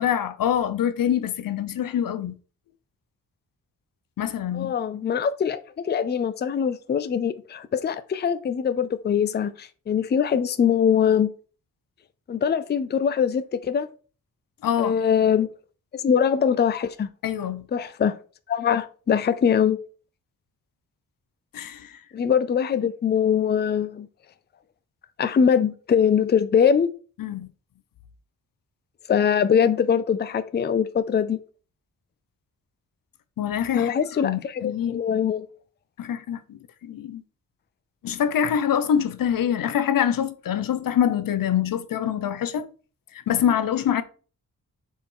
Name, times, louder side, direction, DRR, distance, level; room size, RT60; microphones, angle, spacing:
voice 1, 0.0-2.4 4.2-4.7 14.6-15.0 17.2-17.7 21.5-22.0 27.2-27.5 33.4-34.0 34.2-35.0 36.0-37.2 38.0-42.7 43.1-44.0, left 9 dB, 85° left, 0.8 m, -25 dB
voice 2, 4.5-11.3 12.3-13.9 14.8-15.5 15.9-17.1 17.7-18.1 18.5-19.8 22.1-24.1 25.2-26.9 29.1-31.4 33.7-35.5, left 7 dB, 30° left, 0.5 m, -22 dB
7.2 x 4.4 x 3.8 m
wide cardioid pair, 160°, 33 cm